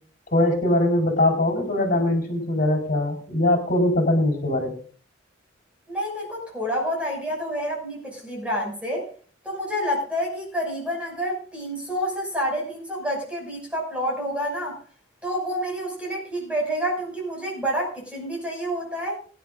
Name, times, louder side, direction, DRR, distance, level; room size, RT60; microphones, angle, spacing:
voice 1, 0.3-4.7, left 1 dB, 45° left, 0 dB, 4.4 m, -21 dB
voice 2, 5.9-9.1 9.4-14.8 15.2-19.2, equal, 5° right, -2 dB, 6.2 m, -28 dB
24.5 x 11.5 x 2.6 m, 0.42 s
head